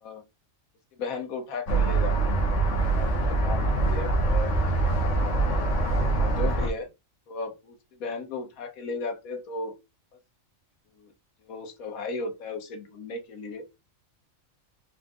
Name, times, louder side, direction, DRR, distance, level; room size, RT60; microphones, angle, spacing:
voice 1, 1.0-2.1 2.9-4.5 6.1-6.9 7.3-9.7 11.0-11.1 11.4-13.6, left 4 dB, 90° left, 1.4 m, -35 dB
sound 1, 1.7-6.7, right 3 dB, 65° left, 1.4 m, -24 dB
4.4 x 2.5 x 3.6 m
omnidirectional pair, 1.4 m